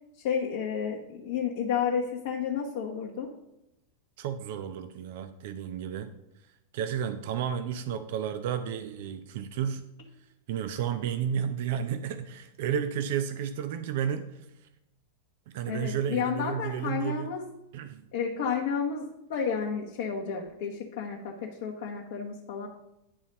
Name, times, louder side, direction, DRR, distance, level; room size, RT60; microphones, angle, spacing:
voice 1, 0.2-3.3 15.7-17.5 18.1-21.3 21.6-22.7, left 7 dB, 55° left, -1 dB, 0.9 m, -31 dB
voice 2, 4.2-6.1 6.7-9.8 10.5-14.5 15.5-17.3 17.7-18.0, right 8 dB, 50° right, 10 dB, 0.5 m, -32 dB
9.8 x 4.1 x 5.1 m, 0.88 s
figure-of-eight pair, 90°, 0 cm